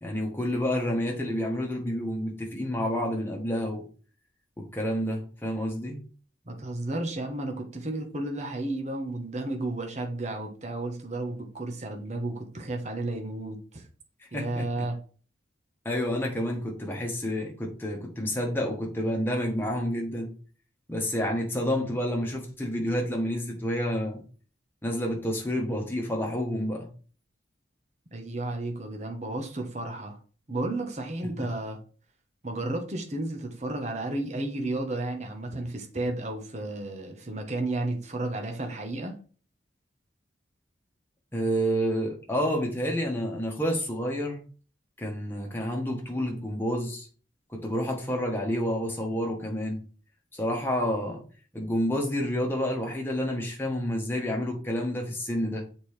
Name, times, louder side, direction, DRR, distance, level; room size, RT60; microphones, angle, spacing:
voice 1, 0.0-3.8 4.6-6.0 14.3-14.8 15.8-20.3 20.9-24.2 24.8-26.9 41.3-44.4 45.0-47.1 47.5-49.8 50.3-51.2 51.5-55.7, equal, 10° left, 1.3 m, -29 dB
voice 2, 6.5-13.9 14.3-15.0 28.1-30.2 30.5-31.8 32.4-39.1, right 2 dB, 35° right, 1.0 m, -33 dB
7.7 x 4.4 x 3.3 m
head